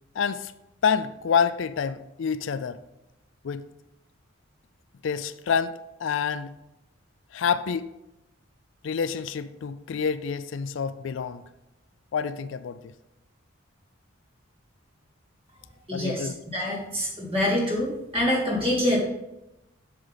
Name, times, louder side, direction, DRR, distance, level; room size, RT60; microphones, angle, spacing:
voice 1, 0.1-0.5 0.8-2.8 3.4-3.7 5.0-6.5 7.3-7.9 8.8-11.4 12.1-12.8 15.9-16.4, left 6 dB, 65° left, 0.4 m, -27 dB
voice 2, 15.9-19.0, left 1 dB, 25° right, 2.5 m, -26 dB
7.8 x 6.9 x 4.0 m
head